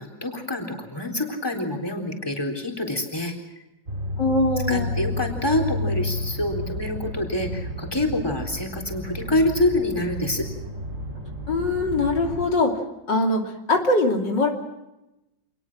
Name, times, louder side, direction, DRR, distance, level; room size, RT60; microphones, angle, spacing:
voice 1, 0.0-3.3 4.7-10.5, left 1 dB, 15° left, 2 dB, 3.9 m, -26 dB
sound 1, 3.9-12.5, left 1 dB, 45° right, 3.6 m, -31 dB
voice 2, 4.2-4.9 11.5-12.7 13.1-13.4 13.7-14.5, left 2 dB, 85° left, 2 dB, 3.6 m, -22 dB
27.0 x 20.0 x 6.2 m, 0.95 s
omnidirectional pair, 1.9 m